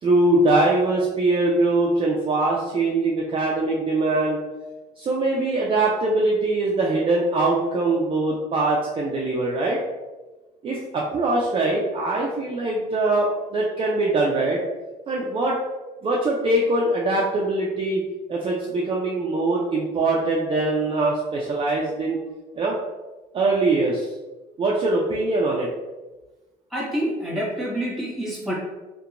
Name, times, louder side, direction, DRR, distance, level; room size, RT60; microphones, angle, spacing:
voice 1, 0.0-4.4 5.0-9.8 10.6-14.6 15.1-15.6 16.0-18.0 18.3-22.2 22.5-22.8 23.3-24.1 24.6-25.7, right 2 dB, 30° right, -3 dB, 0.4 m, -22 dB
voice 2, 26.7-28.5, equal, ahead, -6 dB, 1.0 m, -27 dB
2.8 x 2.2 x 2.4 m, 1.1 s
cardioid pair, 110°, 17 cm